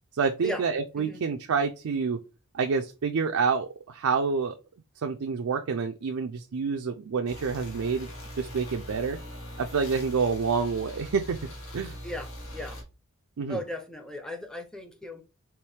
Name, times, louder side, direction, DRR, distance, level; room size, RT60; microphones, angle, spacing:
voice 1, 0.1-2.2 2.5-4.6 5.0-8.1 8.3-9.2 9.6-11.4 11.7-12.0 13.4-13.6, right 5 dB, 75° right, 0.4 m, -28 dB
sound 1, 7.3-12.8, equal, 90° left, 1.5 m, -41 dB
voice 2, 12.0-12.8 13.5-15.2, left 1 dB, 5° left, 0.6 m, -37 dB
4.6 x 3.1 x 3.3 m
head